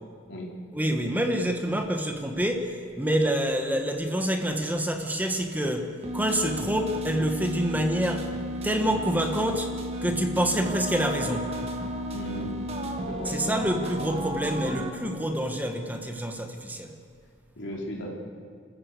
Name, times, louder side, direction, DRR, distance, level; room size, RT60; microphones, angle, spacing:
voice 1, 0.7-8.3 8.6-9.7 10.0-11.5 13.2-17.0, right 1 dB, 10° right, 4 dB, 1.4 m, -27 dB
sound 1, 6.0-14.9, equal, 30° right, 1.7 m, -33 dB
voice 2, 12.1-12.6 13.1-13.4 17.6-18.1, equal, 60° left, -1 dB, 3.9 m, -36 dB
27.0 x 14.0 x 8.3 m, 2.2 s
head